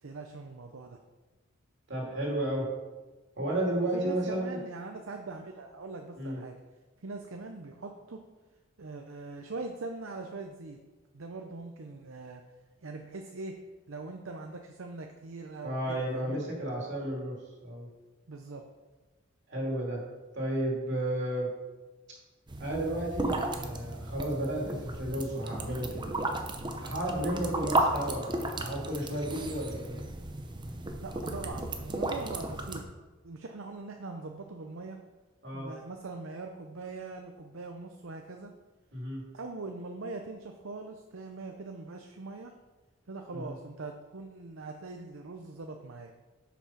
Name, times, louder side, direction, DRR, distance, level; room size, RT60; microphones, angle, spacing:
voice 1, 0.0-1.0 3.8-6.5 7.0-8.2 8.8-10.8 11.1-12.4 12.8-13.5 13.9-16.4 18.3-18.6 31.0-32.8 33.2-35.0 35.5-38.5 39.3-42.5 43.1-46.1, right 3 dB, 80° right, 4 dB, 0.7 m, -42 dB
voice 2, 1.9-2.7 3.4-4.6 6.2-6.4 15.6-17.4 17.6-17.9 19.5-20.0 20.3-21.5 22.6-26.1 26.8-30.0 35.4-35.7 38.9-39.2 43.3-43.5, right 1 dB, 60° right, -2 dB, 2.7 m, -32 dB
sound 1, 22.5-32.8, right 2 dB, 25° right, 0.8 m, -34 dB
8.4 x 5.9 x 5.8 m, 1.2 s
head